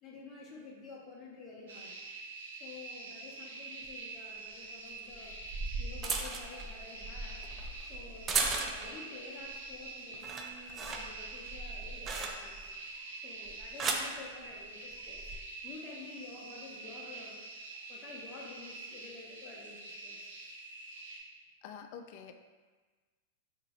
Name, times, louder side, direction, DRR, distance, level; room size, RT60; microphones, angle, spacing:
voice 1, 0.0-1.9 2.6-5.4 5.8-7.4 7.8-12.6 12.9-20.3, left 3 dB, 30° left, -3 dB, 0.8 m, -50 dB
sound 1, 1.7-21.2, right 3 dB, 80° right, 0.7 m, -46 dB
sound 2, 3.8-3.9 5.1-9.1 9.5-9.8 10.1-12.7 13.5-14.1 15.0-15.4, right 4 dB, 30° right, 0.4 m, -37 dB
voice 2, 21.6-22.3, left 7 dB, 55° left, 6 dB, 0.3 m, -47 dB
2.9 x 2.7 x 4.0 m, 1.4 s
hypercardioid pair, 110°, 0 cm